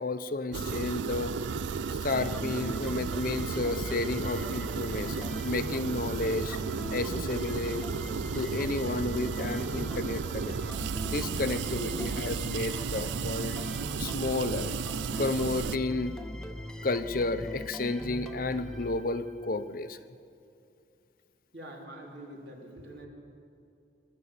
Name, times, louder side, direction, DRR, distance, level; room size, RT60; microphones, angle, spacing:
voice 1, 0.0-1.3 2.0-6.6 6.9-7.9 8.3-10.6 11.1-13.6 14.0-14.7 15.2-16.2 16.8-20.0, left 2 dB, 50° left, 11 dB, 0.8 m, -32 dB
sound 1, 0.5-15.8, right 5 dB, 90° right, 0.4 m, -34 dB
sound 2, 2.1-19.6, equal, 5° left, 1.0 m, -41 dB
voice 2, 21.5-23.1, right 1 dB, 70° right, -1 dB, 3.9 m, -45 dB
24.0 x 12.5 x 8.8 m, 2.5 s
head